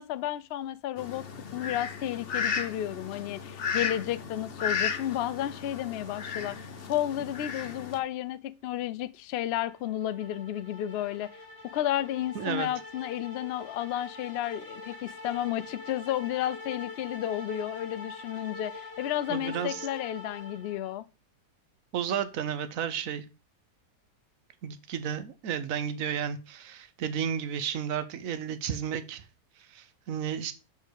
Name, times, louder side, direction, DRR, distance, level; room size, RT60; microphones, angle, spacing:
voice 1, 0.0-6.6 6.9-11.3 11.7-21.1, left 12 dB, 85° left, 0.5 m, -32 dB
Fowl, 1.0-8.0, left 6 dB, 45° left, 1.0 m, -34 dB
sound 1, 9.6-21.0, left 3 dB, 15° right, 2.4 m, -44 dB
voice 2, 12.3-12.7 19.3-19.9 21.9-23.3 24.6-29.2 29.7-30.5, right 8 dB, 60° right, 1.2 m, -32 dB
6.4 x 5.4 x 6.3 m
omnidirectional pair, 1.7 m